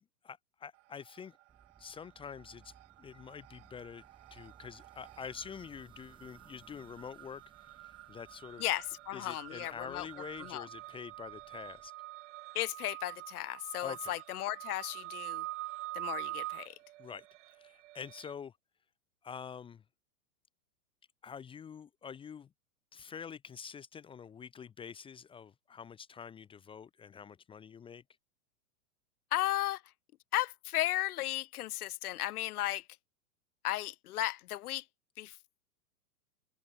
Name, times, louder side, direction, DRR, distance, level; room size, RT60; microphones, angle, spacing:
voice 1, 0.2-1.4 1.8-4.0 4.3-8.6 9.1-11.9 13.8-14.1 17.0-18.5 19.2-19.8 21.2-22.5 22.9-28.0, left 7 dB, 10° left, 0.9 m, -46 dB
sound 1, 0.8-1.4 1.7-18.3, right 18 dB, 55° right, 2.0 m, -46 dB
sound 2, 1.5-11.9, right 6 dB, 10° right, 1.4 m, -63 dB
voice 2, 8.6-10.1 10.4-10.7 12.5-15.4 15.9-16.8 29.3-29.8 30.3-32.8 33.6-34.8 35.2-35.4, left 15 dB, 85° left, 0.6 m, -35 dB
open air
hypercardioid pair, 145°, 43 cm